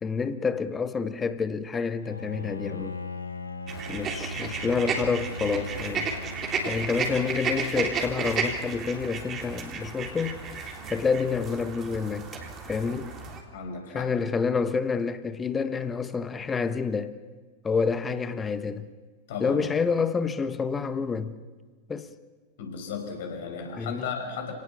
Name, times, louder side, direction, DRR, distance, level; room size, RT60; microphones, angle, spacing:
voice 1, 0.0-3.0 3.9-6.1 6.6-10.4 10.9-12.3 12.7-13.1 13.9-17.1 17.6-18.9 19.4-21.4 21.9-22.1 23.8-24.1, left 5 dB, 15° left, 1.4 m, -28 dB
Bowed string instrument, 2.0-7.4, left 2 dB, 75° left, 1.5 m, -39 dB
sound 1, 3.7-13.4, right 5 dB, 30° right, 3.5 m, -33 dB
voice 2, 13.5-14.1 19.3-19.6 22.6-24.5, left 5 dB, 55° left, 5.9 m, -35 dB
30.0 x 18.0 x 7.1 m
figure-of-eight pair, 90°, 0 cm